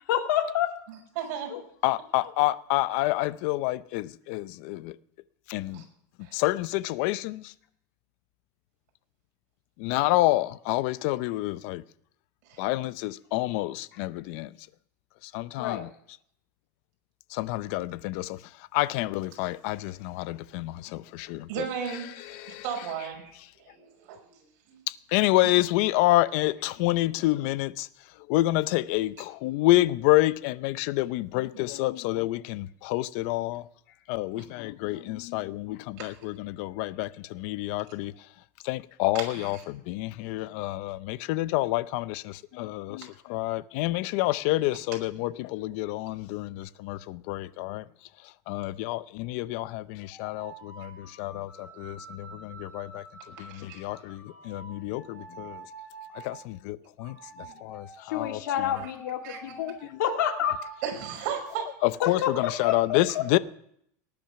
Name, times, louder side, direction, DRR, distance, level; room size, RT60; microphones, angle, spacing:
voice 1, 0.1-0.7 1.5-1.6 15.6-15.8 58.0-60.6 62.0-63.2, left 10 dB, 85° left, 2.0 m, -28 dB
voice 2, 0.9-1.5 5.7-5.8 6.2-6.4 12.5-12.7 21.5-23.3 23.6-24.8 34.3-34.4 36.0-36.1 39.1-39.5 53.4-53.8 59.2-59.4 60.8-61.7, right 8 dB, 55° right, 5.7 m, -36 dB
voice 3, 1.8-5.0 5.5-5.8 6.3-7.5 9.8-11.8 12.6-14.5 15.2-15.9 17.3-18.4 18.7-21.7 22.2-22.6 24.9-27.9 28.3-33.7 34.1-38.1 38.6-47.8 48.5-53.0 53.4-55.7 56.1-58.7 61.8-63.4, left 18 dB, 50° left, 0.6 m, -28 dB
sound 1, 50.0-56.4 57.0-61.5, right 3 dB, 15° left, 4.2 m, -47 dB
19.0 x 10.5 x 5.8 m
supercardioid pair, 160°, 10 cm